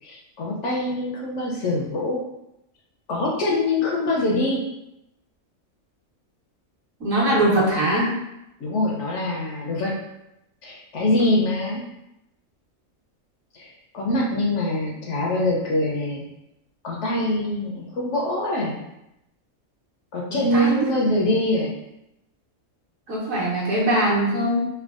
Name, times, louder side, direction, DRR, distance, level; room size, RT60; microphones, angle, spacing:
voice 1, 0.0-2.2 3.1-4.6 8.6-9.9 10.6-11.8 13.5-16.3 16.8-18.8 20.1-21.8, left 1 dB, 65° left, -2 dB, 0.8 m, -24 dB
voice 2, 7.0-8.2 20.3-20.9 23.1-24.6, right 1 dB, 65° right, -6 dB, 1.3 m, -21 dB
3.4 x 2.2 x 2.3 m, 0.86 s
omnidirectional pair, 1.5 m